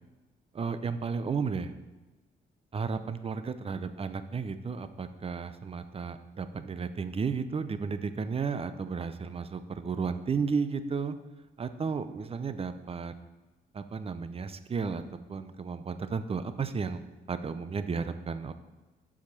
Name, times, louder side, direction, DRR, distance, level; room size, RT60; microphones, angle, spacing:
voice 1, 0.5-1.7 2.7-11.2 11.6-13.1 13.7-15.0 15.3-17.0 17.3-18.5, right 5 dB, 30° right, 11 dB, 0.5 m, -33 dB
7.2 x 4.9 x 5.4 m, 1.2 s
cardioid pair, 90°, 20 cm